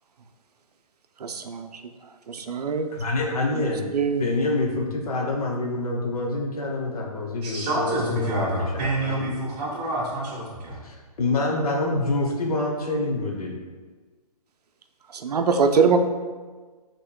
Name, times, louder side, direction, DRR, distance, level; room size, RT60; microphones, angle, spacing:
voice 1, 1.2-1.8 2.3-2.9 3.5-3.6 3.9-4.3 15.1-16.0, right 5 dB, 80° right, 6 dB, 0.5 m, -23 dB
voice 2, 2.9-3.8 4.2-9.3 10.8-13.6, left 2 dB, 70° left, 1 dB, 0.7 m, -26 dB
voice 3, 7.4-10.8, right 1 dB, 25° right, -6 dB, 1.2 m, -27 dB
5.4 x 2.9 x 2.2 m, 1.4 s
hypercardioid pair, 145°, 20 cm